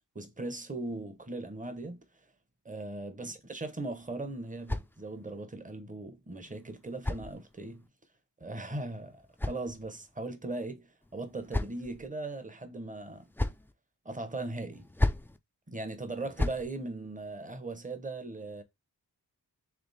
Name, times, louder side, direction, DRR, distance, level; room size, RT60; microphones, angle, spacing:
voice 1, 0.1-2.0 2.6-7.9 8.4-13.3 14.0-14.8 15.7-18.6, right 2 dB, 20° right, 0.8 m, -39 dB
sound 1, 3.8-5.4 6.4-7.9 8.9-10.2 11.0-12.1 13.0-13.7 14.7-15.4 16.1-16.7, left 2 dB, 5° left, 0.3 m, -35 dB
3.4 x 3.4 x 4.0 m
wide cardioid pair, 75°, 40 cm